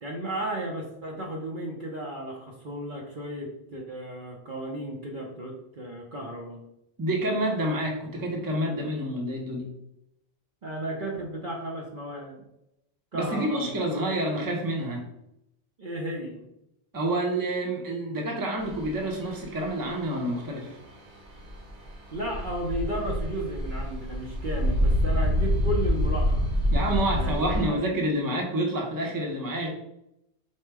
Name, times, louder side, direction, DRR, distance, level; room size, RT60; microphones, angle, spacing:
voice 1, 0.0-6.6 10.6-12.4 13.1-13.8 15.8-16.5 22.1-26.5 27.0-27.8, right 1 dB, 50° right, -1 dB, 0.8 m, -34 dB
voice 2, 7.0-9.7 13.1-15.0 16.9-20.8 26.7-29.7, right 1 dB, 20° right, 0 dB, 0.7 m, -28 dB
sound 1, 18.6-27.6, equal, 85° right, 1.1 m, -27 dB
4.4 x 2.1 x 4.6 m, 0.83 s
omnidirectional pair, 1.2 m